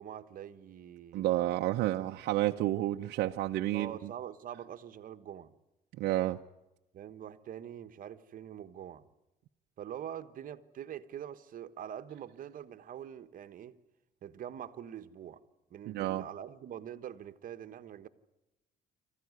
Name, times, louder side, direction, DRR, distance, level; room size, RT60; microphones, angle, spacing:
voice 1, 0.0-1.3 3.7-5.5 6.9-9.1 9.8-13.8 14.2-15.4 15.7-18.1, right 10 dB, 55° right, 1.3 m, -44 dB
voice 2, 1.1-3.9 6.0-6.4 15.9-16.2, right 14 dB, 75° right, 0.8 m, -30 dB
26.0 x 15.0 x 9.6 m
cardioid pair, 110°, 17 cm